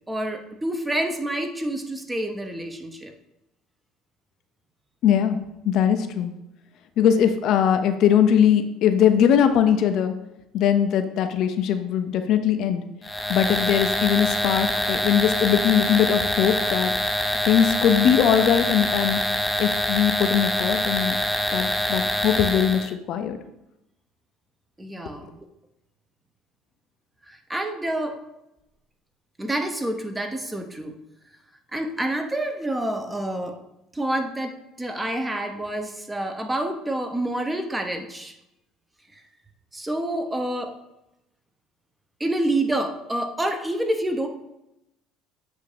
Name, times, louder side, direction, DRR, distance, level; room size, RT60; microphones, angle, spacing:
voice 1, 0.1-3.1 24.8-25.4 27.3-28.2 29.4-31.0 31.7-33.6 33.9-38.3 39.7-40.8 42.2-44.3, right 1 dB, 10° right, 6 dB, 0.9 m, -28 dB
voice 2, 5.0-5.4 5.6-6.3 7.0-10.1 10.5-12.8 13.3-16.9 17.4-19.2 19.6-21.2 21.5-23.4, left 9 dB, 65° left, 8 dB, 0.6 m, -20 dB
sound 1, 13.0-22.9, left 1 dB, 10° left, 0.6 m, -25 dB
7.9 x 2.8 x 5.0 m, 0.89 s
supercardioid pair, 85°, 0 cm